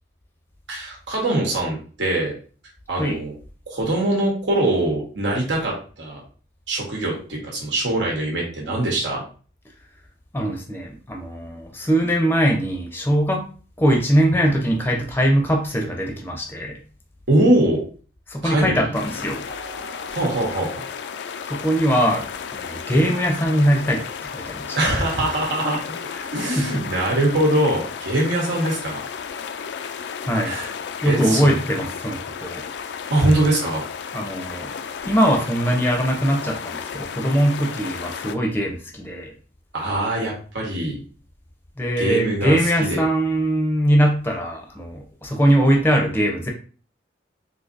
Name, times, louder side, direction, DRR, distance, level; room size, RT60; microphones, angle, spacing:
voice 1, 0.7-2.3 2.9-3.3 3.7-6.2 6.7-9.2 17.3-17.8 18.4-18.8 20.1-20.7 24.7-25.8 26.3-29.0 30.4-30.7 31.0-31.5 33.1-33.8 39.7-41.0 42.0-43.0, right 1 dB, 75° right, -2 dB, 1.1 m, -22 dB
voice 2, 10.3-13.4 13.8-16.8 18.3-19.4 21.5-24.8 26.2-26.8 30.2-30.5 31.0-32.6 34.1-34.7 35.1-39.3 41.8-46.5, equal, 10° left, 1 dB, 0.6 m, -21 dB
sound 1, 18.9-38.4, left 6 dB, 65° left, 0.3 m, -33 dB
Mallet percussion, 19.5-21.9, right 5 dB, 25° right, 0.8 m, -46 dB
3.8 x 2.7 x 2.6 m, 0.40 s
head